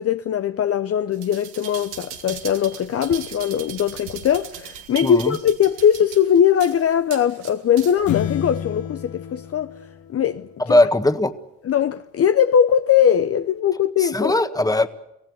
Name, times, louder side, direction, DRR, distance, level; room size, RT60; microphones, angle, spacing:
voice 1, 0.0-9.7 10.1-10.8 11.7-14.3, left 9 dB, 40° left, 0.8 m, -20 dB
sound 1, 1.1-8.1 8.6-8.7, right 9 dB, 90° right, 2.3 m, -38 dB
voice 2, 5.0-5.4 10.6-11.3 14.0-14.9, left 2 dB, 10° left, 1.6 m, -19 dB
sound 2, 8.1-10.7, left 10 dB, 75° left, 1.9 m, -30 dB
25.0 x 16.5 x 8.3 m
supercardioid pair, 70°, 35 cm